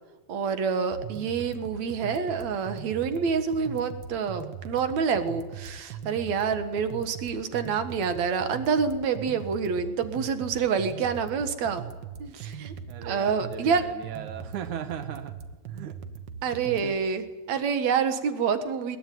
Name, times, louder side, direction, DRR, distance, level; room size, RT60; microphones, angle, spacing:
voice 1, 0.3-11.8 12.2-12.7 13.0-13.8 16.4-19.0, right 6 dB, 70° right, 10 dB, 2.9 m, -27 dB
sound 1, 0.9-16.9, right 7 dB, 55° right, 1.4 m, -40 dB
voice 2, 12.9-15.4 15.7-16.0 16.4-17.0, right 9 dB, 85° right, 9 dB, 2.7 m, -38 dB
21.0 x 21.0 x 9.3 m, 1.2 s
omnidirectional pair, 3.3 m